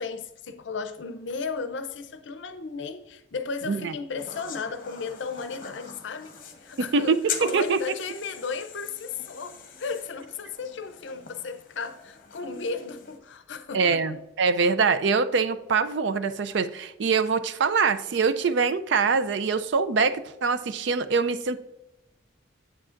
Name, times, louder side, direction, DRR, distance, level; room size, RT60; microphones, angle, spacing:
voice 1, 0.0-14.2, left 4 dB, 65° left, 0.6 m, -35 dB
sound 1, 4.2-13.2, left 7 dB, 40° left, 1.0 m, -42 dB
voice 2, 6.9-7.8 13.7-21.6, right 5 dB, 60° right, 0.4 m, -24 dB
8.3 x 7.5 x 2.5 m
head